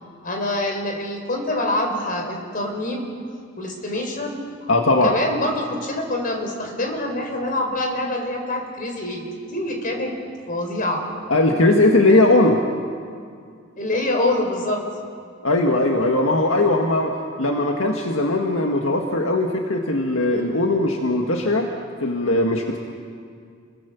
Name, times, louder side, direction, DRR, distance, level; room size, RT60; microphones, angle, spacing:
voice 1, 0.2-3.1 3.6-9.2 9.5-10.1 10.5-11.0 13.8-14.8, left 1 dB, 45° left, 2 dB, 4.7 m, -25 dB
voice 2, 4.7-5.1 11.3-12.6 15.4-21.7 22.0-22.8, left 2 dB, 75° left, 2 dB, 1.8 m, -19 dB
29.5 x 23.5 x 7.1 m, 2.2 s
head